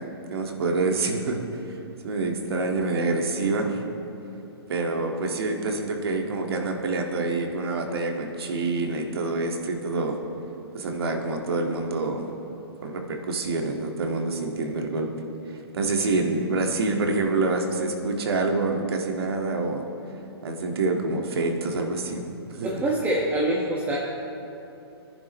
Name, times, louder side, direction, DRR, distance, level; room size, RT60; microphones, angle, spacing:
voice 1, 0.3-1.8 2.0-3.8 4.7-10.2 10.7-12.3 12.8-15.1 15.5-19.8 20.4-22.2 22.5-22.7, right 3 dB, 65° right, 2 dB, 1.9 m, -27 dB
voice 2, 22.6-24.0, right 1 dB, 10° right, -5 dB, 1.4 m, -25 dB
21.5 x 10.5 x 3.1 m, 2.9 s
hypercardioid pair, 135°, 14 cm